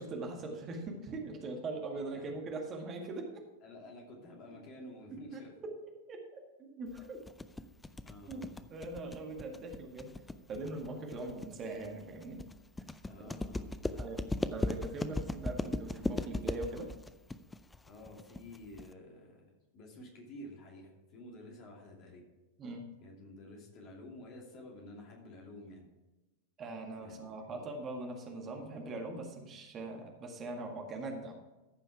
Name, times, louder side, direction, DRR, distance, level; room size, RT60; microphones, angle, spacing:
voice 1, 0.0-3.4 5.3-5.7 6.1-7.2 8.3-10.1 10.5-12.4 13.2-13.4 14.0-14.2 14.5-16.9 22.6-22.9 26.6-31.3, right 2 dB, 30° right, 2 dB, 1.9 m, -41 dB
voice 2, 3.6-5.5 8.0-8.8 13.1-14.2 17.9-19.5 19.7-22.2 23.0-25.9 27.0-27.3, left 1 dB, 40° left, 0 dB, 2.6 m, -51 dB
sound 1, 7.0-18.9, left 2 dB, 10° left, 0.5 m, -38 dB
14.5 x 5.6 x 4.7 m, 1.1 s
figure-of-eight pair, 90°, 0 cm